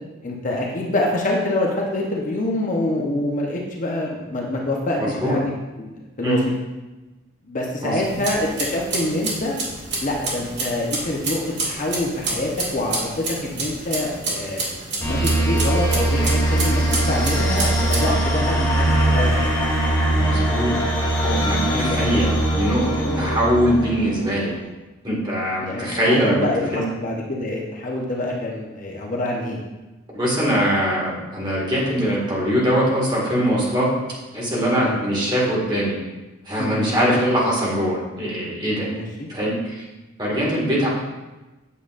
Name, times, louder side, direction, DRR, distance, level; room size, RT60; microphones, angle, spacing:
voice 1, 0.2-5.5 5.8-6.5 7.4-9.6 10.0-14.7 15.0-19.4 21.6-22.1 23.1-23.3 25.6-29.6 34.7-35.0 36.6-36.9 38.9-39.3, left 1 dB, 40° left, -1 dB, 0.8 m, -26 dB
voice 2, 5.0-5.4 6.2-6.4 7.8-8.0 18.0-18.2 20.2-20.7 21.1-22.9 23.2-24.5 25.0-26.3 26.7-26.9 30.1-33.9 34.3-35.9 36.5-38.9 39.3-39.8 40.2-40.9, equal, 20° right, -5 dB, 1.9 m, -22 dB
sound 1, 8.0-18.1, right 3 dB, 55° right, 1.9 m, -29 dB
sound 2, 15.0-24.4, right 1 dB, 15° left, 1.9 m, -21 dB
8.4 x 6.8 x 2.5 m, 1.1 s
head